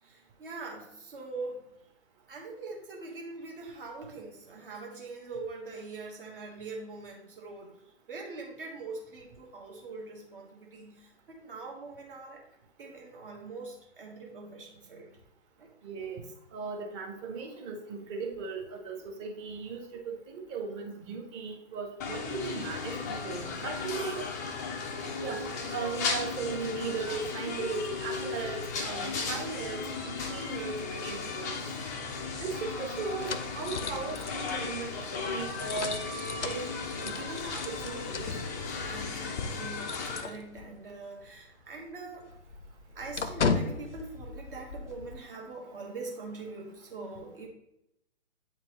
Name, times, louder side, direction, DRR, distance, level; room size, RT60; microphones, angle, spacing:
voice 1, 0.0-1.6 2.3-7.8 8.1-12.4 12.8-15.1 15.6-15.7 38.7-42.3 42.9-47.5, right 3 dB, 50° right, -1 dB, 1.3 m, -43 dB
voice 2, 15.8-16.3 16.5-24.2 25.2-31.7 32.4-36.0 36.4-36.7 37.0-38.3, right 5 dB, 25° right, 3 dB, 1.0 m, -37 dB
sound 1, 22.0-40.2, left 4 dB, 15° left, 0.4 m, -36 dB
sound 2, 32.1-40.9 41.2-41.4 41.7-45.2, left 5 dB, 80° left, 0.7 m, -37 dB
8.1 x 4.4 x 2.9 m, 0.80 s
figure-of-eight pair, 125°, 35 cm